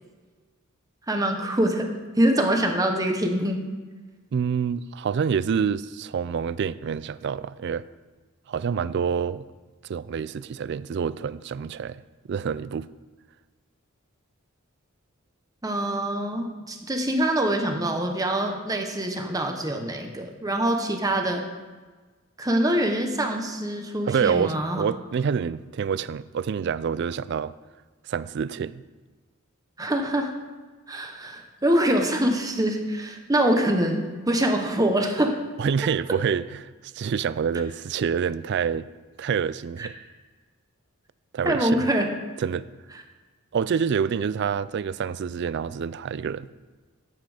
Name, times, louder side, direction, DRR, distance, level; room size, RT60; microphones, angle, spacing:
voice 1, 1.1-1.9 2.2-3.6 15.6-21.4 22.4-24.8 29.8-30.3 30.9-35.4 39.8-39.9 41.4-42.0, right 1 dB, 15° right, 3 dB, 0.9 m, -24 dB
voice 2, 4.3-7.9 8.5-9.4 9.8-12.0 12.3-12.9 24.1-27.5 28.0-28.8 35.6-38.9 39.2-39.9 41.3-41.9 42.4-42.7 43.5-46.5, right 6 dB, 55° right, 17 dB, 0.3 m, -27 dB
9.7 x 8.4 x 4.9 m, 1.3 s
head